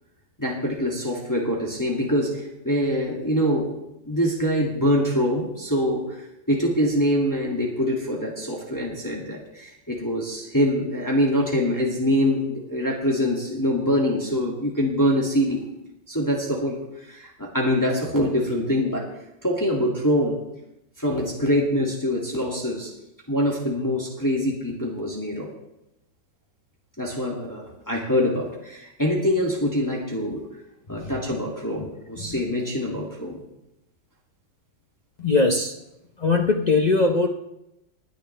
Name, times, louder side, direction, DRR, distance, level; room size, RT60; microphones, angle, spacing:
voice 1, 0.4-3.7 4.0-15.7 16.1-16.8 17.1-19.0 19.4-20.4 21.0-22.9 23.3-25.5 27.0-30.4 30.9-33.4, equal, 10° left, -3 dB, 2.3 m, -24 dB
voice 2, 35.2-35.7 36.2-37.3, left 3 dB, 55° left, 1 dB, 0.4 m, -21 dB
20.5 x 10.5 x 3.4 m, 0.87 s
omnidirectional pair, 2.2 m